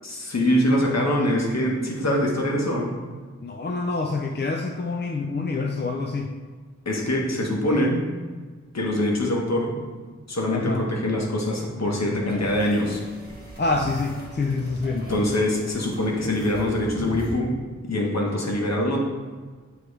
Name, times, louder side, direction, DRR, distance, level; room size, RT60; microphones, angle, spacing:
voice 1, 0.0-2.9 6.8-8.0 8.7-9.8 10.3-13.0 14.9-17.5 17.8-19.0, left 1 dB, 60° left, -1 dB, 1.3 m, -24 dB
voice 2, 3.4-6.3 10.5-10.8 13.6-15.0, left 3 dB, 35° left, 2 dB, 0.5 m, -26 dB
sound 1, 12.3-17.3, right 1 dB, 30° right, 1.5 m, -39 dB
9.2 x 3.1 x 3.3 m, 1.5 s
wide cardioid pair, 80°, 30 cm